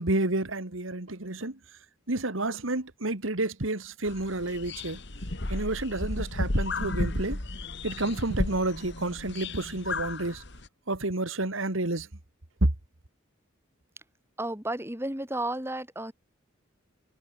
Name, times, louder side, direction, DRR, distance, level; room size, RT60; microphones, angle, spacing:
voice 1, 0.0-1.6 2.1-5.0 5.5-7.4 7.8-10.4 10.9-12.1, right 2 dB, 75° right, 2.2 m, -30 dB
sound 1, 4.1-10.7, left 2 dB, 55° left, 2.4 m, -33 dB
voice 2, 14.4-16.1, right 1 dB, 10° right, 3.1 m, -32 dB
head